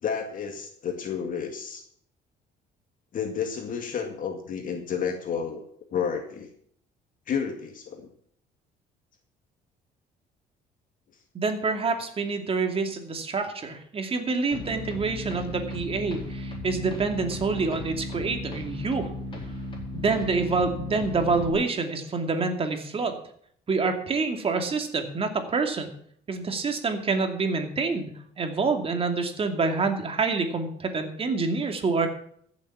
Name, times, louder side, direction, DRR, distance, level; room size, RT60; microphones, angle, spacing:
voice 1, 0.0-1.9 3.1-5.6 5.9-6.5 7.3-8.1, left 7 dB, 55° left, 4 dB, 2.1 m, -31 dB
voice 2, 11.3-19.1 19.9-23.2 23.7-25.9 26.3-32.1, right 4 dB, 35° right, 5 dB, 2.6 m, -27 dB
sound 1, 14.5-21.5, left 1 dB, 30° left, 4.4 m, -36 dB
15.0 x 7.4 x 7.3 m, 0.65 s
cardioid pair, 110°, 17 cm